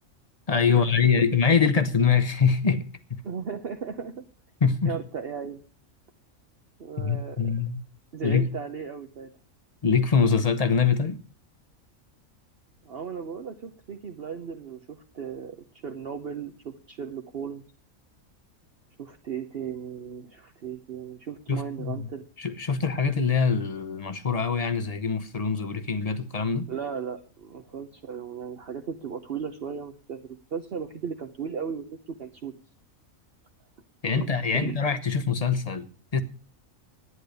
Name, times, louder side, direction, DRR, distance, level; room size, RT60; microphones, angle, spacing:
voice 1, 0.5-3.2 4.6-4.9 7.0-7.8 8.2-8.5 9.8-11.2 21.5-22.1 22.4-26.7 34.0-36.2, left 5 dB, 30° left, 1.1 m, -24 dB
voice 2, 3.2-4.2 4.9-5.6 6.8-7.5 8.1-9.3 12.8-15.6 15.8-17.6 19.0-22.2 26.7-31.9 32.2-32.5 34.1-34.3 34.5-34.8, right 6 dB, 50° right, 1.0 m, -36 dB
11.0 x 9.8 x 6.6 m
omnidirectional pair, 1.4 m